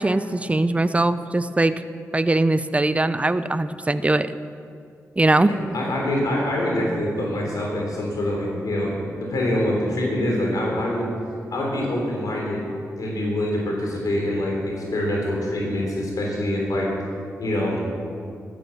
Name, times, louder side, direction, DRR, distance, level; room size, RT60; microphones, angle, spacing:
voice 1, 0.0-1.7 2.1-4.3 5.2-5.5, right 2 dB, 20° right, 12 dB, 0.7 m, -21 dB
voice 2, 5.3-11.1 11.5-12.7 13.0-16.9 17.4-17.8, left 1 dB, 80° left, -1 dB, 3.7 m, -25 dB
13.0 x 11.5 x 7.4 m, 2.4 s
cardioid pair, 60°, 6 cm